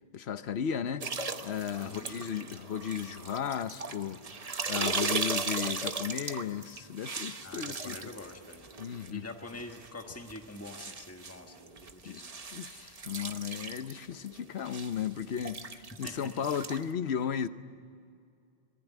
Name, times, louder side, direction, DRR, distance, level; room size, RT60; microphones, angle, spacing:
voice 1, 0.1-1.1 1.4-4.2 4.7-8.0 8.8-9.3 12.0-12.2 12.5-17.5, left 8 dB, 80° left, 1.1 m, -35 dB
sound 1, 1.0-9.1 9.5-16.9, right 4 dB, 35° right, 1.0 m, -38 dB
voice 2, 1.8-2.3 7.4-8.7 9.1-12.3 16.0-16.4, left 2 dB, 15° left, 1.5 m, -45 dB
26.5 x 19.0 x 9.2 m
omnidirectional pair, 1.1 m